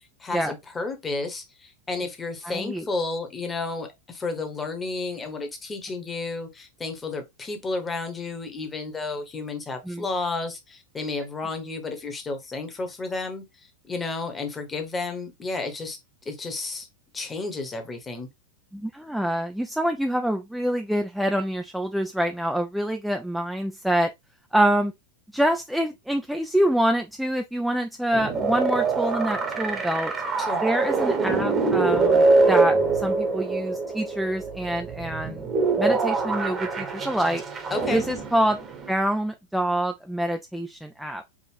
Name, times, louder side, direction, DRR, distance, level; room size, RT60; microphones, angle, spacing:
voice 1, 0.2-16.0 16.2-16.9 17.1-18.3 30.4-30.6 37.7-38.0, left 3 dB, 15° left, 1.1 m, -32 dB
voice 2, 2.4-2.9 9.9-10.1 18.7-24.1 24.5-24.9 25.3-30.1 30.6-35.4 35.8-37.4 37.9-38.6 38.9-41.2, right 1 dB, ahead, 0.4 m, -26 dB
sound 1, 28.1-38.9, right 3 dB, 20° right, 1.0 m, -24 dB
5.0 x 2.5 x 3.1 m
figure-of-eight pair, 90°, 0 cm